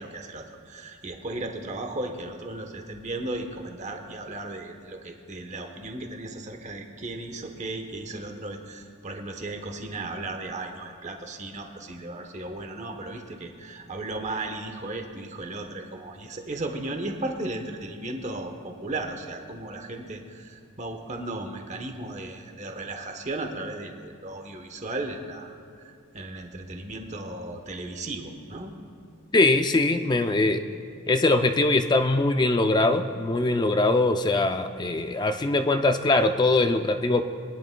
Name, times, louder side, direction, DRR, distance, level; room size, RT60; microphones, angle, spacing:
voice 1, 0.0-25.5 25.8-28.7, right 2 dB, 35° right, 4 dB, 1.0 m, -35 dB
voice 2, 29.3-30.6 31.1-37.2, left 2 dB, 20° left, 7 dB, 0.3 m, -22 dB
22.0 x 10.5 x 2.2 m, 2.4 s
head